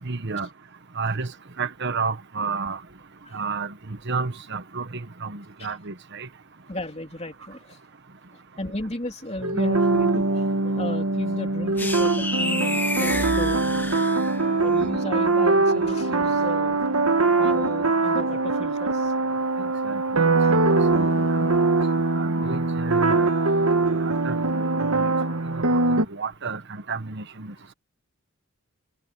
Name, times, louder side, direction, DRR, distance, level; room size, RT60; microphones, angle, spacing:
voice 1, 0.0-0.5 1.0-1.3 1.6-2.8 3.3-6.3 19.8-20.6 20.9-21.5 22.1-23.3 23.9-24.7 25.0-25.1 25.5-25.8 26.1-27.5, right 4 dB, 50° right, 1.2 m, -31 dB
voice 2, 6.7-7.8 8.6-13.7 14.6-16.8 17.4-19.1 20.4-20.6, left 1 dB, 30° left, 3.6 m, -35 dB
sound 1, 9.4-26.1, right 3 dB, 75° right, 1.7 m, -22 dB
sound 2, 11.8-14.7, left 2 dB, 10° left, 1.5 m, -30 dB
head